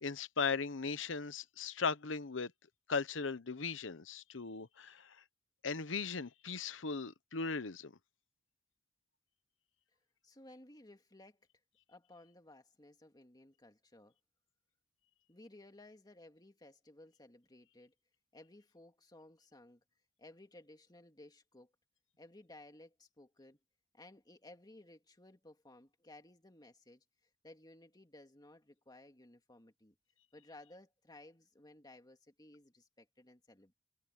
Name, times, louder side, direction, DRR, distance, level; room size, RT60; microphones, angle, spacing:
voice 1, 0.0-2.5 2.9-5.2 5.6-7.9, left 5 dB, 85° left, 1.0 m, -38 dB
voice 2, 10.2-11.5 11.9-14.1 15.3-17.9 18.3-19.8 20.2-21.7 22.2-23.6 23.9-27.0 27.4-29.9 30.3-33.7, left 1 dB, 20° left, 2.4 m, -58 dB
head